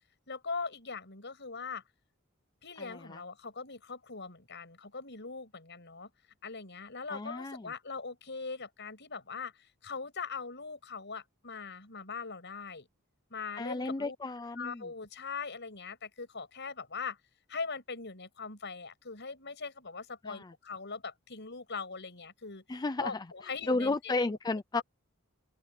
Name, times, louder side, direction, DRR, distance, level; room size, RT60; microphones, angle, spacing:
voice 1, 0.3-1.8 2.6-6.1 6.4-9.5 9.8-12.8 13.3-14.1 14.6-17.1 17.5-21.0 21.3-22.6 23.0-24.4 24.7-24.8, left 4 dB, 55° left, 6.8 m, -41 dB
voice 2, 2.8-3.2 7.1-7.7 13.6-14.8 20.2-20.5 22.7-23.2 23.7-24.8, left 3 dB, 20° left, 0.4 m, -33 dB
open air
head